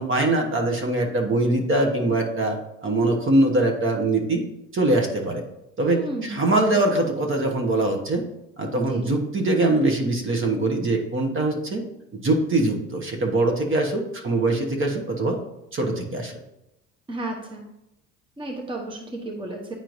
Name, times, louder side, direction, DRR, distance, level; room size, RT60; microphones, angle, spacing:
voice 1, 0.0-4.4 4.7-5.4 5.8-8.2 8.6-11.8 12.1-15.4 15.7-16.3, right 2 dB, 35° right, 3 dB, 1.3 m, -22 dB
voice 2, 5.9-6.5 8.7-9.1 17.1-17.6 18.4-19.7, right 1 dB, 15° right, 1 dB, 1.1 m, -33 dB
9.1 x 4.4 x 2.7 m, 0.88 s
hypercardioid pair, 75°, 35 cm